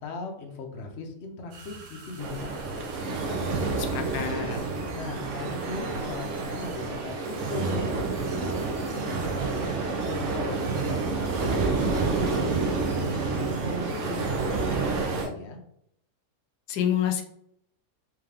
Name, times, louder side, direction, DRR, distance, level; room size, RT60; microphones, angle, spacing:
voice 1, 0.0-3.5 4.9-9.3 9.8-15.6, left 3 dB, 55° left, 3 dB, 0.9 m, -39 dB
sound 1, 1.5-15.3, right 3 dB, 80° right, 1.4 m, -46 dB
sound 2, 2.2-15.3, right 3 dB, 60° right, 0.9 m, -29 dB
voice 2, 3.8-4.6 16.7-17.2, left 9 dB, 85° left, 7 dB, 1.2 m, -28 dB
3.6 x 3.4 x 3.4 m, 0.71 s
omnidirectional pair, 1.7 m